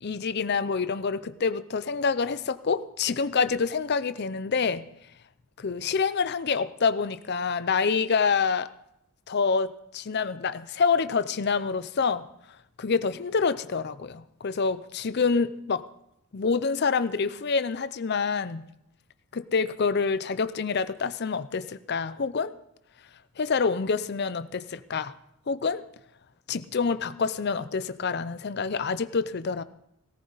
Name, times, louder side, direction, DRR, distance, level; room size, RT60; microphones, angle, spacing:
voice 1, 0.0-4.9 5.6-8.7 9.3-12.2 12.8-15.8 16.3-18.7 19.3-22.5 23.4-25.1 25.5-25.8 26.5-29.6, left 5 dB, 50° left, 14 dB, 0.5 m, -27 dB
17.5 x 14.5 x 4.0 m, 0.79 s
head